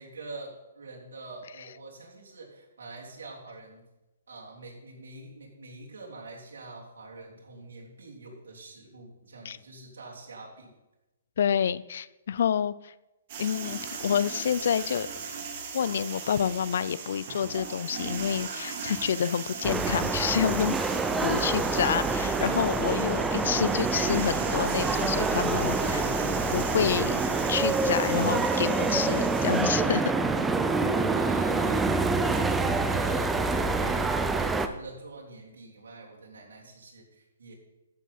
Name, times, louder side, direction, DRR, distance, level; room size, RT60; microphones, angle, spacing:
voice 1, 0.0-3.8 4.3-10.7 21.2-21.9 31.1-37.5, right 3 dB, 85° right, -2 dB, 3.3 m, -45 dB
voice 2, 11.4-12.9 13.4-15.1 15.7-20.8 21.2-26.0 26.5-27.2 27.5-30.1, left 8 dB, 65° left, 18 dB, 0.4 m, -28 dB
sound 1, 13.3-29.6, right 5 dB, 45° right, 2.2 m, -38 dB
sound 2, 19.6-34.7, right 3 dB, 10° right, 0.6 m, -26 dB
sound 3, 21.6-21.9 22.2-24.6 24.9-26.7, right 5 dB, 30° right, 1.3 m, -43 dB
14.0 x 7.2 x 4.3 m, 1.0 s
hypercardioid pair, 150°, 0 cm